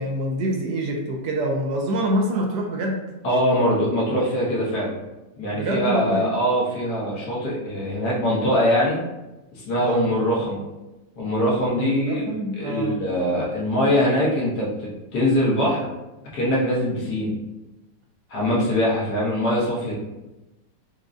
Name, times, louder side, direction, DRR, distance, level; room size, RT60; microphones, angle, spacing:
voice 1, 0.0-3.0 5.5-6.3 9.8-10.1 11.7-13.0, right 1 dB, 75° right, 0 dB, 1.1 m, -26 dB
voice 2, 3.2-4.9 5.4-9.0 9.5-10.6 11.2-15.9 16.3-17.3 18.3-19.9, equal, 65° left, -5 dB, 1.5 m, -22 dB
4.9 x 2.2 x 2.5 m, 1.0 s
omnidirectional pair, 1.9 m